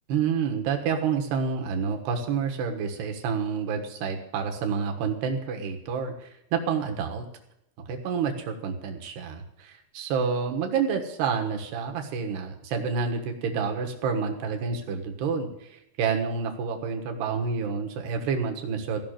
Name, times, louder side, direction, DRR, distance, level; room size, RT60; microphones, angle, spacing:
voice 1, 0.1-7.3 7.9-19.0, right 6 dB, 65° right, 3 dB, 3.2 m, -29 dB
16.0 x 6.0 x 9.1 m, 0.81 s
omnidirectional pair, 5.5 m